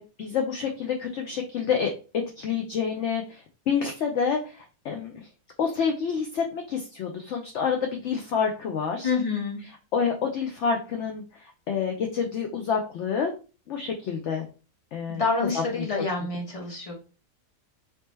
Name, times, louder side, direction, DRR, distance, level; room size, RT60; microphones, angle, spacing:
voice 1, 0.0-5.3 5.6-9.1 9.9-13.3 13.7-14.5 14.9-15.2 15.5-15.8, left 6 dB, 65° left, 3 dB, 0.8 m, -28 dB
voice 2, 9.0-9.6 15.1-16.9, left 4 dB, 25° left, -1 dB, 1.1 m, -27 dB
3.4 x 2.9 x 3.1 m, 0.33 s
omnidirectional pair, 1.5 m